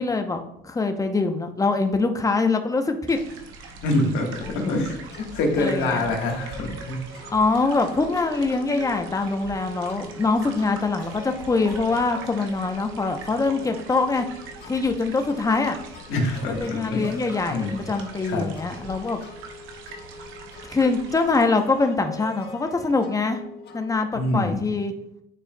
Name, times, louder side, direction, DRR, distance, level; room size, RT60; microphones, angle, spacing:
voice 1, 0.0-3.2 4.4-4.6 5.6-6.1 7.3-14.3 14.6-15.8 16.5-19.2 20.6-23.4 23.7-24.9, left 3 dB, 15° left, 6 dB, 0.7 m, -24 dB
sound 1, 3.1-21.5, right 4 dB, 85° right, 0.8 m, -42 dB
voice 2, 3.8-7.0 16.1-17.1 17.5-17.9 18.2-18.5 24.1-24.6, left 2 dB, 80° left, 1 dB, 1.5 m, -25 dB
sound 2, 5.1-23.9, left 2 dB, 55° left, 1.3 m, -43 dB
9.9 x 4.4 x 2.3 m, 0.77 s
cardioid pair, 95°, 20 cm